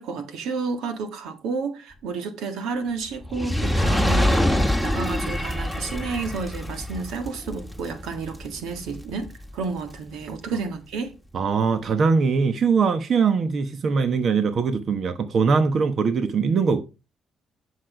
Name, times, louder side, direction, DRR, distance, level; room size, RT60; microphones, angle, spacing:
voice 1, 0.0-11.2, right 4 dB, 85° right, 1.6 m, -31 dB
Fire, 3.2-9.7 10.3-10.4, left 1 dB, 5° right, 1.6 m, -25 dB
voice 2, 11.3-16.8, right 5 dB, 55° right, 1.2 m, -21 dB
10.0 x 6.4 x 5.0 m
cardioid pair, 90°, 0 cm